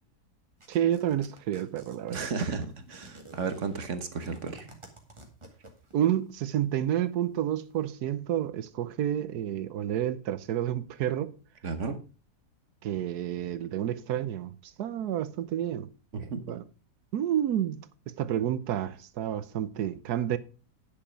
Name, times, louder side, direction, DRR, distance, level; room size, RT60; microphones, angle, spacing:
sound 1, 0.6-6.1, right 2 dB, 20° right, 2.1 m, -50 dB
voice 1, 0.7-2.3 5.9-11.3 12.8-16.6 17.1-20.4, right 11 dB, 75° right, 1.3 m, -30 dB
voice 2, 2.1-4.7 11.6-12.0 16.1-16.4, right 5 dB, 50° right, 1.3 m, -33 dB
10.0 x 6.9 x 5.1 m
omnidirectional pair, 1.7 m